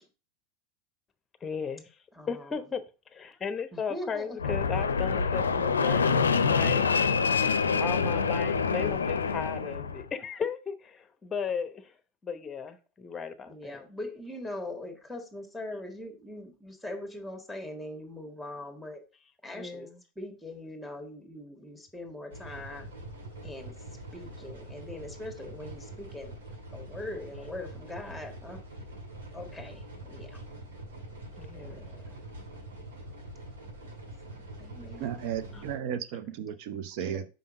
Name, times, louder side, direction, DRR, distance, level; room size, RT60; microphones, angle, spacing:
voice 1, 1.4-1.9 2.3-6.9 7.8-11.9 12.2-13.8 19.5-20.0 31.3-31.8 35.5-35.6, left 6 dB, 20° left, 0.8 m, -36 dB
voice 2, 2.1-2.6 3.7-4.9 13.5-19.0 19.4-19.9 20.1-22.9 23.4-23.7 24.1-26.3 26.7-28.6 29.3-29.8 30.1-30.4 31.5-32.2 34.3-35.7 37.0-37.2, left 1 dB, ahead, 1.6 m, -41 dB
Fixed-wing aircraft airplane, 4.4-10.0, left 5 dB, 80° left, 0.5 m, -26 dB
sound 1, 22.3-35.8, right 1 dB, 70° right, 2.0 m, -44 dB
voice 3, 35.0-37.3, right 9 dB, 55° right, 0.7 m, -34 dB
5.6 x 5.3 x 3.7 m
figure-of-eight pair, 90°, 0 cm